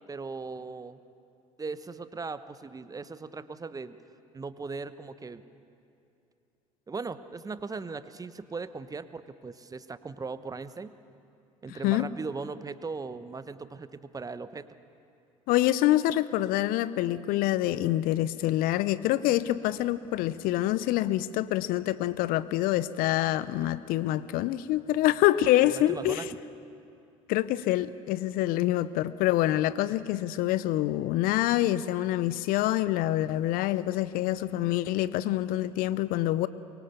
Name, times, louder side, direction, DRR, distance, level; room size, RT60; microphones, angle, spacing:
voice 1, 0.1-1.0 1.6-4.0 4.3-5.4 6.9-10.9 11.6-14.6 23.5-23.7 25.9-26.4, right 4 dB, 20° right, 13 dB, 1.0 m, -38 dB
voice 2, 11.7-12.1 15.5-26.3 27.3-36.5, left 14 dB, 55° left, 17 dB, 0.7 m, -26 dB
23.5 x 23.5 x 6.9 m, 2.6 s
figure-of-eight pair, 60°, 18 cm